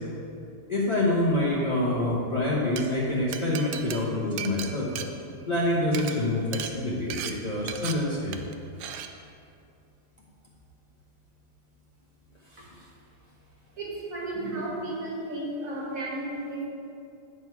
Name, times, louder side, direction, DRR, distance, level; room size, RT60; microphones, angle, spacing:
voice 1, 0.7-4.9 5.5-8.3 12.5-12.7, left 1 dB, 30° left, -6 dB, 1.0 m, -26 dB
Glass, 2.5-2.8 3.3-5.6 5.9-6.1 6.5-6.7 7.1-7.3 7.7-7.9 8.3-8.5 8.8-9.1, right 10 dB, 80° right, 1.2 m, -35 dB
voice 2, 13.8-16.6, right 1 dB, 55° right, -3 dB, 1.8 m, -33 dB
9.7 x 5.3 x 4.7 m, 2.6 s
omnidirectional pair, 1.8 m